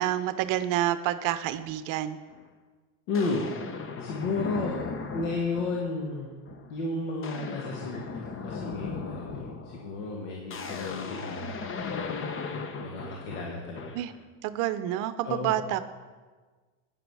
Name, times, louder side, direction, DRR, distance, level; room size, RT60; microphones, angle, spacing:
voice 1, 0.0-2.2 13.9-14.1 14.4-15.8, right 12 dB, 60° right, 12 dB, 0.7 m, -28 dB
sound 1, 2.3-2.4 3.1-6.0 6.5-6.8 7.0-14.2, left 5 dB, 35° left, 1.1 m, -37 dB
voice 2, 3.1-3.5 4.0-4.9 5.1-6.3 6.7-9.4 9.7-12.0 12.8-14.0 15.2-15.5, left 3 dB, 90° left, -1 dB, 1.9 m, -33 dB
12.5 x 10.0 x 4.8 m, 1.4 s
supercardioid pair, 115°, 36 cm